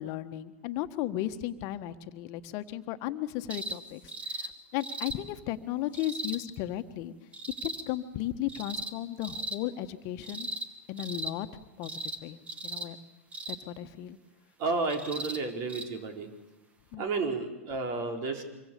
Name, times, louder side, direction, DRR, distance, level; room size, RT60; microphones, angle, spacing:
voice 1, 0.0-4.0 4.3-7.1 7.6-10.5 10.9-11.5 11.8-12.4 12.6-13.0 13.5-14.2 16.9-17.2, left 13 dB, 45° left, 10 dB, 1.6 m, -35 dB
sound 1, 3.5-3.8 4.1-4.5 4.8-5.2 5.9-6.4 7.3-7.8 8.5-8.9 9.2-9.6 10.2-10.7 11.0-11.3 11.8-12.2 12.5-12.9 13.3-13.6 14.9-15.4 15.7-15.9 16.9-17.0, right 1 dB, 20° right, 2.3 m, -37 dB
voice 2, 14.6-16.3 17.0-18.4, right 3 dB, 45° right, 4 dB, 4.3 m, -31 dB
26.0 x 24.0 x 7.1 m, 1.1 s
hypercardioid pair, 100°, 7 cm